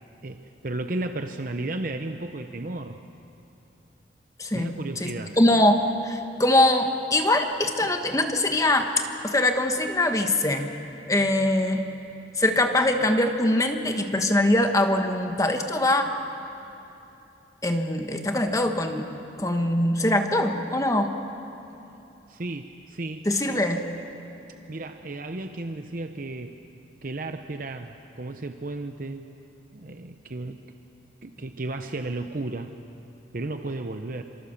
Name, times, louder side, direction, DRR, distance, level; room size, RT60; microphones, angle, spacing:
voice 1, 0.2-3.0 4.5-5.4 22.3-23.3 24.7-26.5 27.0-29.3 29.7-30.6 31.2-32.7 33.3-34.2, right 2 dB, 50° right, 7 dB, 0.8 m, -34 dB
voice 2, 4.4-5.1 5.4-10.7 11.1-11.9 12.4-16.1 17.6-19.1 19.4-21.2 23.2-23.9, left 1 dB, 20° left, 5 dB, 1.3 m, -23 dB
26.5 x 24.5 x 7.2 m, 2.9 s
head